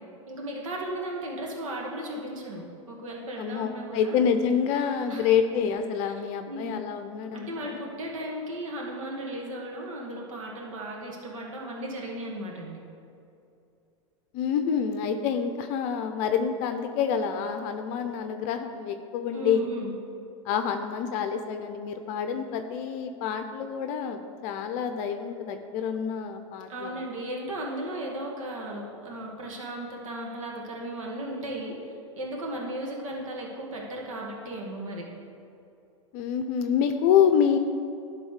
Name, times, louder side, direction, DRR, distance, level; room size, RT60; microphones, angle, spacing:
voice 1, 0.3-4.2 5.1-5.3 6.0-6.1 6.5-6.8 7.3-12.8 19.3-20.0 26.7-35.1, right 1 dB, 80° right, -2 dB, 2.2 m, -36 dB
voice 2, 3.4-7.8 14.3-19.7 20.4-26.9 36.1-37.6, left 7 dB, 45° left, 7 dB, 0.6 m, -27 dB
11.5 x 4.1 x 6.5 m, 2.6 s
hypercardioid pair, 120°, 17 cm